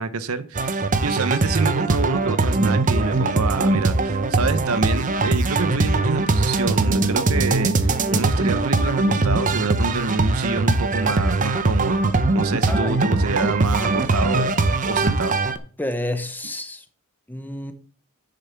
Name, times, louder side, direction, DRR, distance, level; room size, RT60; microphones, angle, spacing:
voice 1, 0.0-12.0 12.3-14.5 14.9-15.4, right 4 dB, 80° right, 0.8 m, -27 dB
sound 1, 0.6-15.6, right 3 dB, 40° right, 0.8 m, -21 dB
voice 2, 12.7-13.0 15.8-16.8 17.3-17.7, left 1 dB, 10° left, 1.0 m, -29 dB
7.7 x 6.8 x 5.7 m
head